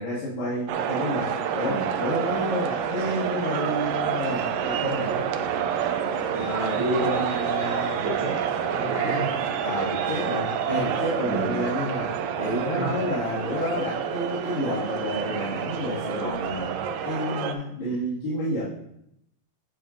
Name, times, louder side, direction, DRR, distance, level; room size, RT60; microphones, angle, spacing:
voice 1, 0.0-5.2 9.0-9.1 9.6-18.6, left 1 dB, 75° left, -12 dB, 4.0 m, -30 dB
sound 1, 0.7-17.5, right 8 dB, 80° right, 2.2 m, -28 dB
voice 2, 6.3-8.4 8.7-9.3 11.3-11.5 12.8-12.9 17.8-18.0, right 1 dB, 65° right, -4 dB, 1.3 m, -30 dB
10.5 x 6.9 x 2.7 m, 0.76 s
omnidirectional pair, 4.0 m